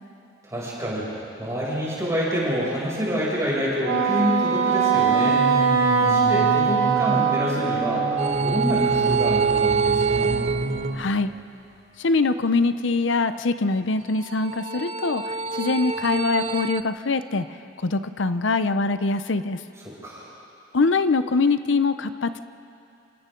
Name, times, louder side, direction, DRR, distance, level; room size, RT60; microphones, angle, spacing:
voice 1, 0.4-1.1 1.4-5.4 5.9-8.1 8.4-10.3 19.8-20.3, equal, 15° right, -7 dB, 6.7 m, -27 dB
Wind instrument woodwind instrument, 3.8-8.3, right 6 dB, 80° right, 1.9 m, -21 dB
sound 1, 5.1-11.0, equal, 50° right, 2.4 m, -30 dB
sound 2, 8.2-11.4 14.2-16.8, right 5 dB, 35° right, 0.4 m, -25 dB
voice 2, 11.0-11.3 12.0-15.2 15.6-17.5 17.8-19.6 20.7-22.4, left 3 dB, 65° left, 12 dB, 0.7 m, -23 dB
28.0 x 27.5 x 3.9 m, 2.7 s
head